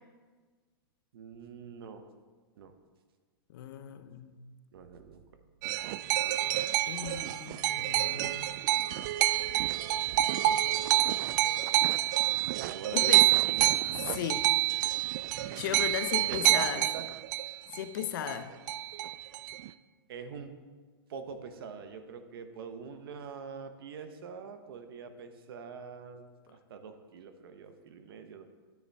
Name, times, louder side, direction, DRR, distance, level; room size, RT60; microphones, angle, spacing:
voice 1, 1.1-2.0 2.6-2.7 4.7-5.2 12.5-13.7 16.3-17.1 20.1-20.6 21.1-28.5, right 6 dB, 70° right, 8 dB, 1.0 m, -44 dB
voice 2, 3.5-4.5 6.8-8.6 12.9-13.3 14.1-14.5 15.6-16.8 17.7-18.5, left 10 dB, 60° left, 10 dB, 0.7 m, -36 dB
sound 1, 5.6-18.4 18.7-19.7, right 15 dB, 50° right, 0.4 m, -28 dB
10.0 x 9.4 x 3.5 m, 1.4 s
hypercardioid pair, 125°, 13 cm